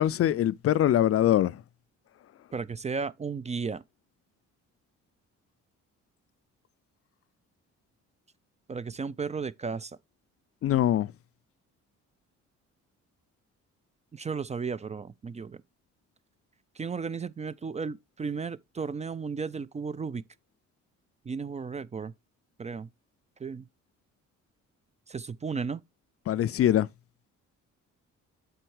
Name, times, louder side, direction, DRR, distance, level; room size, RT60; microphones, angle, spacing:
voice 1, 0.0-1.6 10.6-11.1 26.3-26.9, left 12 dB, 50° left, 0.4 m, -23 dB
voice 2, 2.5-3.8 8.7-10.0 14.1-15.6 16.8-20.2 21.3-22.1 22.6-22.9 23.4-23.7 25.1-25.8, right 5 dB, 25° right, 0.4 m, -34 dB
7.8 x 4.3 x 4.7 m
cardioid pair, 90°, 30 cm